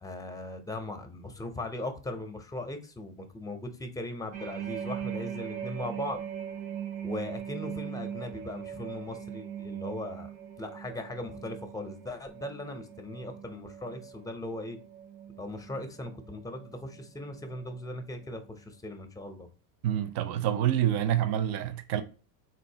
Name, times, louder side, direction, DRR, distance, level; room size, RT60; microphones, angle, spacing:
voice 1, 0.0-6.2 7.0-10.3 10.6-14.8 15.4-19.5, left 2 dB, 10° left, 0.6 m, -39 dB
sound 1, 4.3-17.9 18.2-18.5, right 9 dB, 85° right, 0.9 m, -41 dB
voice 2, 19.8-22.0, right 11 dB, 55° right, 0.6 m, -27 dB
4.0 x 2.6 x 2.7 m
supercardioid pair, 100°, 45 cm